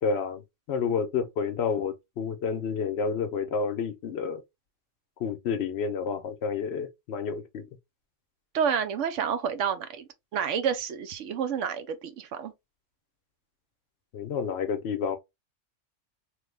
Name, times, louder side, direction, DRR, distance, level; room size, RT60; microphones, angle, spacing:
voice 1, 0.0-4.4 5.2-7.6 14.1-15.2, left 6 dB, 65° left, 0.8 m, -30 dB
voice 2, 8.5-12.5, right 7 dB, 85° right, 1.0 m, -29 dB
3.2 x 2.2 x 3.3 m
omnidirectional pair, 1.2 m